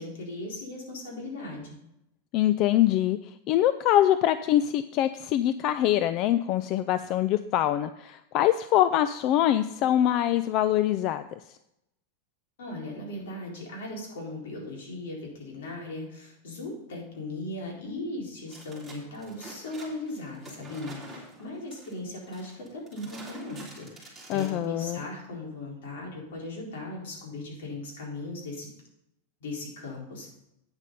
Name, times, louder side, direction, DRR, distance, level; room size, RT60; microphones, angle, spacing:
voice 1, 0.0-1.8 12.6-28.7 29.4-30.3, left 2 dB, 75° left, -2 dB, 4.1 m, -38 dB
voice 2, 2.3-3.2 3.5-11.2 24.3-25.0, left 12 dB, 40° left, 13 dB, 0.3 m, -24 dB
sound 1, 18.5-24.9, right 2 dB, 5° right, 3.1 m, -47 dB
9.0 x 7.5 x 5.3 m, 0.82 s
supercardioid pair, 145°, 0 cm